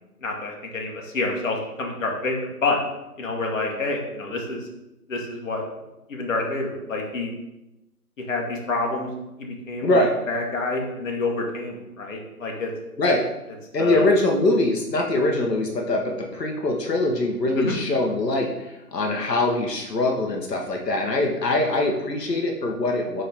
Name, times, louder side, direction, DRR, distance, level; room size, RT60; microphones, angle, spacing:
voice 1, 0.2-2.8 3.2-4.7 5.1-5.6 6.1-7.3 8.2-9.1 9.4-12.7 13.8-14.0 17.6-17.8, left 3 dB, 55° left, 0 dB, 1.1 m, -28 dB
voice 2, 9.8-10.1 13.0-13.2 13.7-23.2, left 2 dB, 90° left, 1 dB, 0.9 m, -23 dB
4.3 x 3.7 x 3.3 m, 0.95 s
figure-of-eight pair, 145°, 47 cm